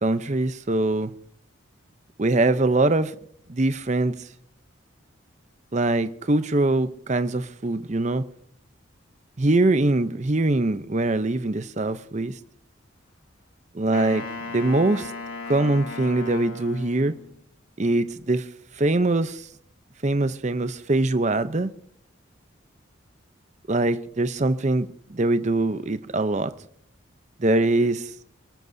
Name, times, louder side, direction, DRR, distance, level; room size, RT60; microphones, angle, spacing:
voice 1, 0.0-1.1 2.2-3.2 3.5-4.2 5.7-8.2 9.4-12.3 13.7-14.2 14.5-15.1 15.5-17.1 17.8-18.5 18.8-19.5 20.0-21.7 23.7-26.5 27.4-28.1, right 2 dB, 35° right, 0.7 m, -23 dB
Wind instrument woodwind instrument, 13.9-17.4, left 4 dB, 85° left, 2.6 m, -36 dB
28.0 x 13.5 x 2.7 m
head